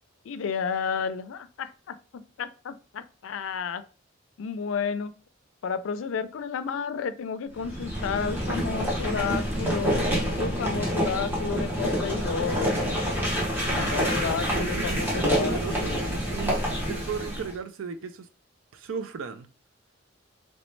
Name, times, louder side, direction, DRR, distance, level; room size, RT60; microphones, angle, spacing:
voice 1, 0.3-3.8 4.4-5.1 5.6-10.0 10.4-13.0 13.8-16.0, left 6 dB, 85° left, 0.4 m, -32 dB
sound 1, 7.5-17.5, equal, 10° right, 1.1 m, -27 dB
voice 2, 13.5-14.1 14.4-18.3 18.7-19.5, right 6 dB, 90° right, 0.4 m, -36 dB
3.2 x 3.0 x 3.1 m
head